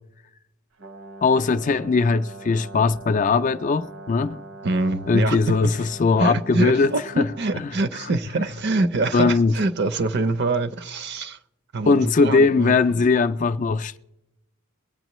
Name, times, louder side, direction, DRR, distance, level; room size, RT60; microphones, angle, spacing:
Brass instrument, 0.8-7.8, right 3 dB, 70° right, 1.2 m, -42 dB
voice 1, 1.2-4.4 5.1-6.9 7.2-7.3 9.1-9.5 11.9-14.0, left 4 dB, 35° left, 0.3 m, -20 dB
voice 2, 4.6-5.5 6.2-11.4 11.7-13.0, right 2 dB, 50° right, 0.6 m, -25 dB
22.0 x 8.7 x 3.1 m
head